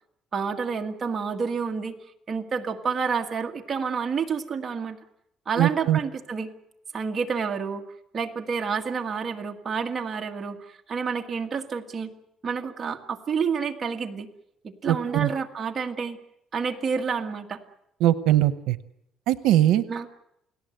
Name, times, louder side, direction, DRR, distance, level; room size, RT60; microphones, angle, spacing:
voice 1, 0.3-2.0 2.3-5.0 5.5-6.5 6.9-7.8 8.1-12.1 12.4-14.3 14.6-16.2 16.5-17.6 19.9-20.1, right 5 dB, 25° right, 2 dB, 1.8 m, -29 dB
voice 2, 5.6-6.0 14.8-15.3 18.0-18.8 19.3-19.8, right 13 dB, 90° right, 13 dB, 0.9 m, -21 dB
29.0 x 18.0 x 7.9 m, 0.78 s
cardioid pair, 160°, 0 cm